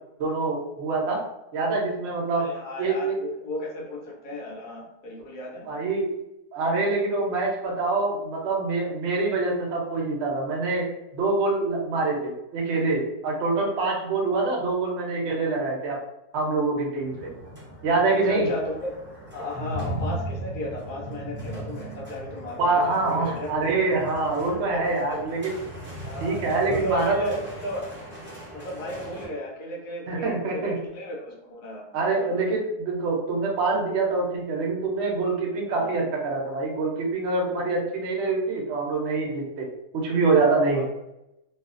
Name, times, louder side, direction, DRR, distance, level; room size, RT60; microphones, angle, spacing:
voice 1, 0.2-1.2 1.5-2.5 2.8-3.2 5.6-6.1 6.5-16.0 16.3-17.3 17.8-18.5 22.6-25.6 26.2-27.4 30.1-30.8 31.9-40.8, right 3 dB, 60° right, -1 dB, 0.8 m, -25 dB
voice 2, 2.3-5.7 18.1-18.9 19.3-23.8 24.5-25.2 26.0-26.4 26.7-27.9 28.5-32.4 35.7-35.9 40.7-40.8, left 1 dB, 90° left, -1 dB, 1.3 m, -35 dB
sound 1, 16.9-29.2, right 1 dB, 15° right, 0.4 m, -38 dB
2.7 x 2.4 x 2.4 m, 0.89 s
omnidirectional pair, 1.6 m